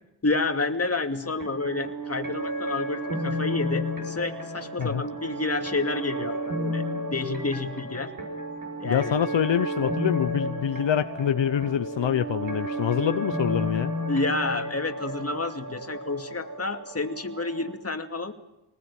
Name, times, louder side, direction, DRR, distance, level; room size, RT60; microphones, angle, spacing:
voice 1, 0.2-6.8 7.1-8.1 8.8-9.2 14.1-18.3, left 3 dB, 30° left, 6 dB, 2.6 m, -29 dB
sound 1, 1.2-17.7, equal, 45° right, 7.9 m, -32 dB
voice 2, 8.8-13.9, left 9 dB, 70° left, 11 dB, 0.9 m, -26 dB
24.5 x 20.0 x 8.5 m, 0.87 s
cardioid pair, 80°, 45 cm